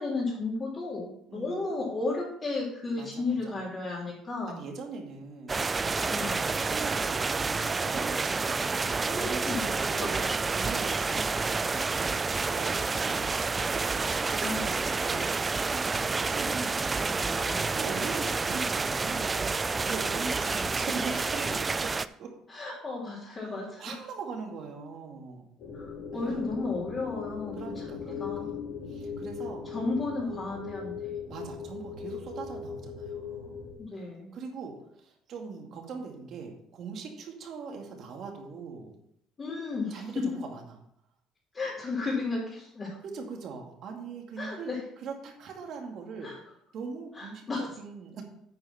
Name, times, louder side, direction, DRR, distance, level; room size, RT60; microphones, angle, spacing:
voice 1, 0.0-4.6 6.1-6.4 9.0-9.7 10.0-10.3 14.4-14.7 15.1-15.2 17.0-17.8 20.4-20.6 22.5-23.8 25.7-27.9 28.2-28.5 29.7-31.1 33.8-34.4 39.4-40.2 41.5-42.9 44.4-44.8 46.2-46.3 47.1-47.7, left 3 dB, 30° left, -7 dB, 3.1 m, -34 dB
voice 2, 1.3-1.8 3.0-3.5 4.5-5.7 6.0-10.2 10.5-16.8 17.7-22.3 23.6-25.5 26.1-26.5 27.5-28.5 28.9-29.7 30.2-30.6 31.3-33.6 33.9-38.9 39.9-40.8 43.0-44.7 45.0-46.4 46.7-48.2, right 5 dB, 55° right, 2 dB, 2.2 m, -41 dB
sound 1, 5.5-22.1, right 4 dB, 25° right, 0.3 m, -29 dB
sound 2, 25.6-33.7, left 6 dB, 60° left, 3.2 m, -39 dB
9.2 x 4.9 x 5.9 m, 0.72 s
cardioid pair, 100°, 0 cm